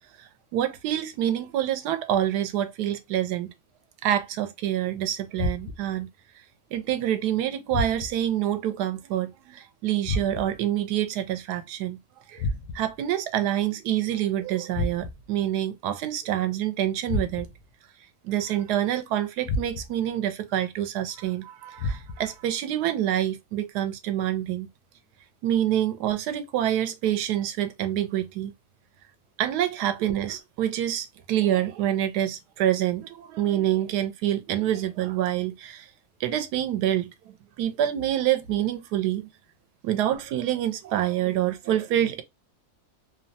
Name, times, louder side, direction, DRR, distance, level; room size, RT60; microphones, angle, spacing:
voice 1, 0.5-3.5 4.0-6.1 6.7-12.0 12.3-12.4 12.7-17.5 18.2-24.7 25.4-28.5 29.4-35.9 36.2-39.3 39.8-42.2, right 12 dB, 90° right, 1.1 m, -27 dB
sound 1, 5.4-6.0 7.7-8.3 10.0-10.7 12.4-13.0 14.7-15.4 17.1-17.7 19.4-20.1 21.8-22.4, left 2 dB, 70° left, 0.6 m, -31 dB
3.0 x 2.0 x 2.5 m
omnidirectional pair, 1.7 m